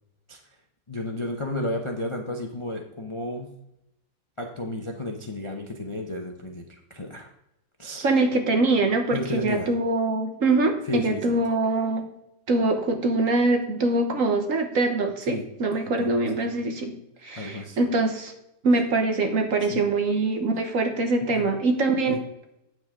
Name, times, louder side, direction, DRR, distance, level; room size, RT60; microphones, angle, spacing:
voice 1, 0.9-3.5 4.4-7.3 7.8-8.2 9.1-9.7 10.8-11.3 15.3-15.5 15.7-16.1 16.4-16.5 17.4-17.8 19.7-19.8 21.2-21.5 22.1-22.2, left 1 dB, 30° left, 2 dB, 0.6 m, -32 dB
voice 2, 8.0-12.1 12.5-16.9 17.2-18.3 18.6-22.1, right 2 dB, 55° right, 5 dB, 1.3 m, -23 dB
9.2 x 7.8 x 3.6 m, 0.84 s
omnidirectional pair, 1.9 m